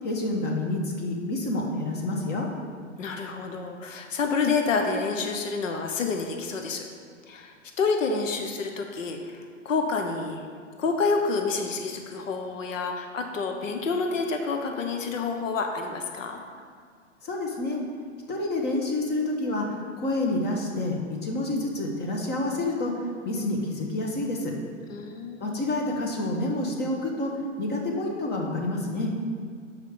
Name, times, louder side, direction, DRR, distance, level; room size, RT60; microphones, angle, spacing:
voice 1, 0.0-2.5 17.2-17.8 18.3-22.9 23.2-24.5 25.4-27.3 27.6-29.1, left 2 dB, 25° left, 1 dB, 1.2 m, -28 dB
voice 2, 3.0-6.8 7.3-10.4 10.8-16.4 24.9-25.6, left 4 dB, 80° left, 4 dB, 0.9 m, -28 dB
6.6 x 4.9 x 5.0 m, 2.1 s
hypercardioid pair, 115°, 38 cm